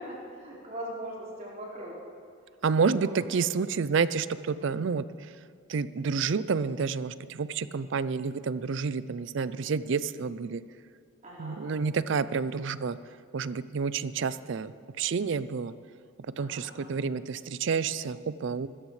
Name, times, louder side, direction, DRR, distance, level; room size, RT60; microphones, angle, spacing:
voice 1, 0.0-2.0 2.8-3.4 4.6-4.7 11.2-11.7 16.4-16.9, equal, 35° right, -6 dB, 4.5 m, -41 dB
voice 2, 2.6-5.0 5.7-10.6 11.4-13.0 13.3-14.7 15.0-15.7 16.4-18.7, right 5 dB, 60° right, 15 dB, 0.4 m, -29 dB
23.5 x 13.5 x 3.2 m, 2.2 s
head